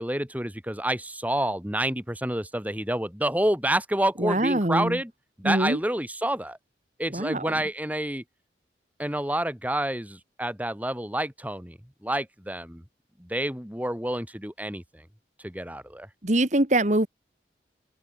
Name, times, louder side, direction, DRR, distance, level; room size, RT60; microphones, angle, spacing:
voice 1, 0.0-5.1 5.4-6.6 7.0-8.2 9.0-11.8 12.0-12.8 13.2-15.0 15.4-16.1, right 1 dB, 10° right, 3.9 m, -28 dB
voice 2, 4.2-5.0 5.4-5.8 7.1-7.5 16.2-17.1, right 1 dB, 40° right, 1.9 m, -23 dB
open air
head